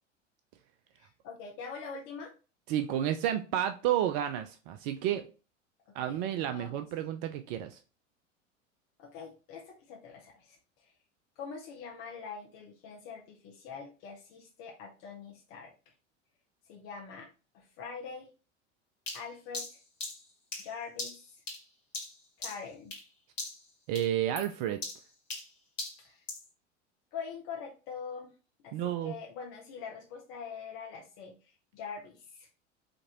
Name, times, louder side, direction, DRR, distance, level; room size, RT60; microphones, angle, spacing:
voice 1, 1.0-2.3 5.9-6.9 9.0-10.9 11.4-15.7 16.7-17.3 17.5-18.3 19.1-19.7 20.6-21.2 22.4-22.9 26.0-26.2 27.1-28.3 28.6-32.5, left 5 dB, 50° left, -1 dB, 1.2 m, -44 dB
voice 2, 2.7-5.3 5.9-7.8 23.9-24.8 28.7-29.1, right 11 dB, 45° right, 8 dB, 0.5 m, -31 dB
sound 1, 19.1-23.1 23.4-23.7 23.9-26.5, left 2 dB, 80° left, 1.8 m, -40 dB
5.1 x 2.9 x 2.9 m, 0.33 s
figure-of-eight pair, 80°, 37 cm